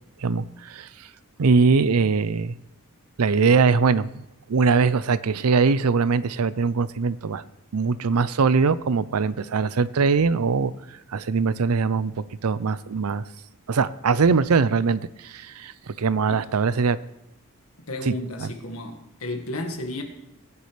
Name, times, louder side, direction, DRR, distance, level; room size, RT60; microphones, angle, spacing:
voice 1, 0.2-1.1 1.4-2.5 3.2-7.4 7.7-10.7 11.1-13.2 13.7-17.0 18.1-18.2 18.4-18.5, right 4 dB, 85° right, 0.5 m, -22 dB
voice 2, 17.8-20.0, left 1 dB, 75° left, 1.8 m, -33 dB
19.0 x 9.8 x 3.3 m
head